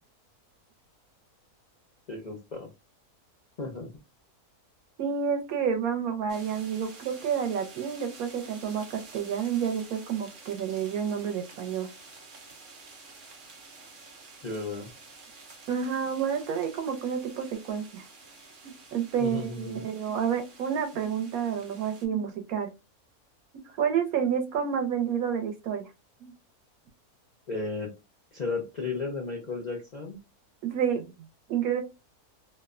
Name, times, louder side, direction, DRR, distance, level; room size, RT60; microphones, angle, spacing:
voice 1, 2.1-2.7 3.6-3.9 14.4-14.9 19.2-19.9 27.5-27.9 28.3-30.2, left 3 dB, 70° left, 1 dB, 0.4 m, -34 dB
voice 2, 5.0-11.9 15.7-18.0 18.6-22.7 23.8-25.9 26.2-26.3 30.6-31.1 31.5-31.8, right 7 dB, 75° right, 6 dB, 1.1 m, -29 dB
sound 1, 6.3-22.1, right 3 dB, 50° right, 0.6 m, -50 dB
2.9 x 2.1 x 2.4 m, 0.25 s
omnidirectional pair, 1.6 m